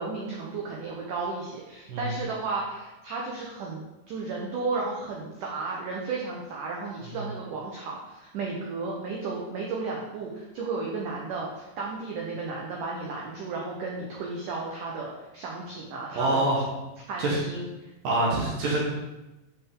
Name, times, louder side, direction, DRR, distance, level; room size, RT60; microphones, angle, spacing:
voice 1, 0.0-3.8 4.1-16.5 17.1-17.9, right 3 dB, 90° right, -2 dB, 1.8 m, -33 dB
voice 2, 16.2-16.6 17.2-17.4 18.0-18.8, right 2 dB, 60° right, -4 dB, 2.7 m, -25 dB
11.0 x 6.0 x 3.8 m, 1.0 s
omnidirectional pair, 5.3 m